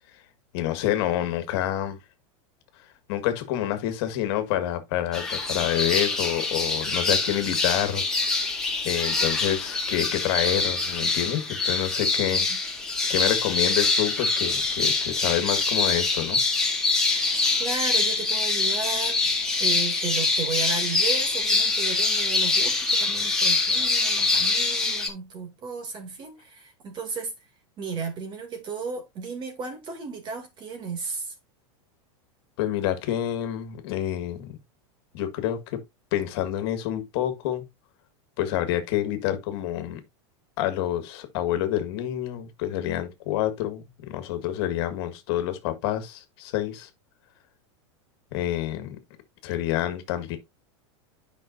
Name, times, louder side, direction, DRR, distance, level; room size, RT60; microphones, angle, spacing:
voice 1, 0.5-2.0 2.8-8.4 8.9-12.5 13.1-16.4 17.4-17.6 32.6-34.6 35.1-35.8 36.1-37.7 38.4-40.0 40.6-46.9 48.3-49.0 49.4-50.4, left 12 dB, 60° left, 1.8 m, -28 dB
sound 1, 5.1-25.1, left 3 dB, 5° left, 2.0 m, -24 dB
voice 2, 17.6-19.3 19.6-27.3 27.8-31.3, right 5 dB, 30° right, 2.5 m, -34 dB
10.0 x 5.5 x 2.6 m
supercardioid pair, 145°, 15 cm